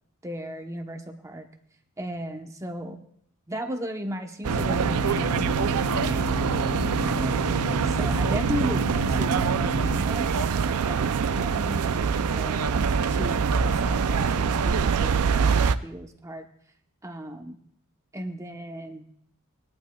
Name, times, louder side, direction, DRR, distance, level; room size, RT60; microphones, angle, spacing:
voice 1, 0.2-1.5 2.0-3.0 3.5-16.5 17.0-17.6 18.1-19.1, equal, 15° right, 5 dB, 0.9 m, -36 dB
sound 1, 4.4-15.8, right 6 dB, 90° right, 0.5 m, -24 dB
sound 2, 4.5-10.0, left 3 dB, 60° left, 0.7 m, -33 dB
20.0 x 11.5 x 2.3 m, 0.67 s
head